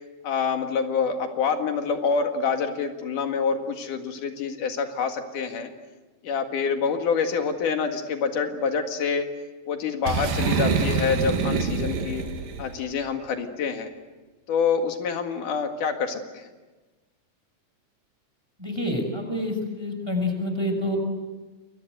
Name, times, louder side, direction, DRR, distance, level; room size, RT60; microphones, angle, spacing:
voice 1, 0.2-5.7 6.2-9.3 9.7-12.2 12.6-13.9 14.5-16.5, left 5 dB, 70° left, 5 dB, 3.4 m, -26 dB
Boom, 10.1-12.8, right 5 dB, 90° right, 3.5 m, -26 dB
voice 2, 18.6-21.0, left 1 dB, 5° right, 4 dB, 5.8 m, -27 dB
28.0 x 22.0 x 7.9 m, 1.2 s
omnidirectional pair, 3.8 m